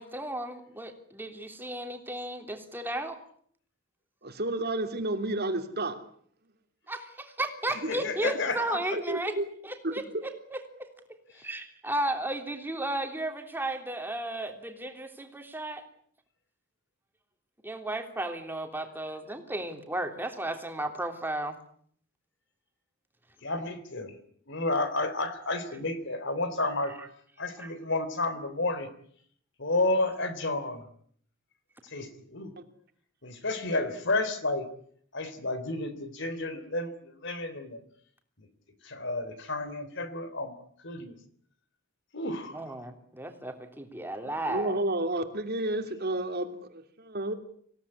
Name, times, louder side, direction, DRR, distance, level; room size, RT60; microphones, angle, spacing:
voice 1, 0.0-3.2 6.9-9.3 9.6-10.9 11.3-15.8 17.6-21.6 27.0-27.1 27.6-27.7 42.5-44.8, right 1 dB, 10° right, 4 dB, 3.3 m, -34 dB
voice 2, 4.2-6.0 7.8-7.9 9.1-9.4 9.8-10.2 32.6-32.7 44.5-47.3, right 1 dB, 50° right, 6 dB, 2.9 m, -31 dB
voice 3, 7.9-8.6 23.4-24.2 24.5-26.9 27.4-28.9 29.6-30.8 31.8-32.5 33.2-34.7 35.1-37.8 38.4-38.5 38.8-40.6 40.8-41.2 42.1-42.6, left 2 dB, 60° left, 11 dB, 3.6 m, -31 dB
26.0 x 17.5 x 9.9 m, 0.62 s
head